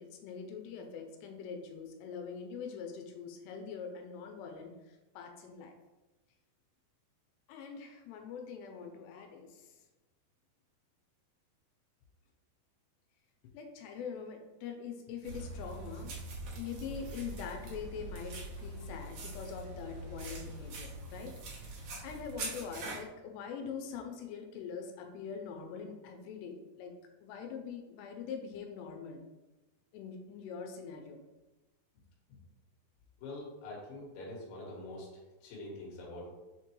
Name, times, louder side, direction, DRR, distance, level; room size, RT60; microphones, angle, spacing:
voice 1, 0.0-5.7 7.5-9.8 13.5-16.1 16.5-26.9 27.2-29.2 29.9-31.2, left 6 dB, 90° left, 3 dB, 2.7 m, -43 dB
sound 1, 15.2-23.0, right 2 dB, 70° right, 2.0 m, -43 dB
voice 2, 33.2-35.1 35.4-36.2, left 2 dB, 70° left, -3 dB, 2.5 m, -44 dB
6.2 x 2.2 x 3.0 m, 1.1 s
omnidirectional pair, 4.7 m